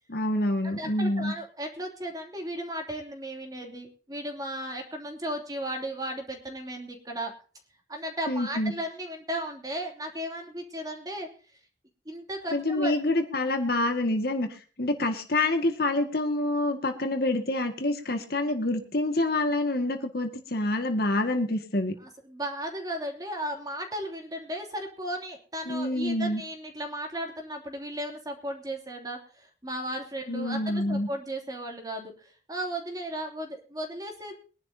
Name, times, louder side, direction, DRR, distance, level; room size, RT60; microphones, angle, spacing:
voice 1, 0.1-1.3 8.3-8.7 12.5-21.9 25.7-26.4 30.3-31.1, left 2 dB, 50° left, 5 dB, 2.0 m, -27 dB
voice 2, 0.6-7.3 7.9-11.3 12.0-12.9 22.0-34.3, right 1 dB, 20° right, 2 dB, 3.0 m, -35 dB
23.0 x 11.0 x 2.8 m, 0.39 s
head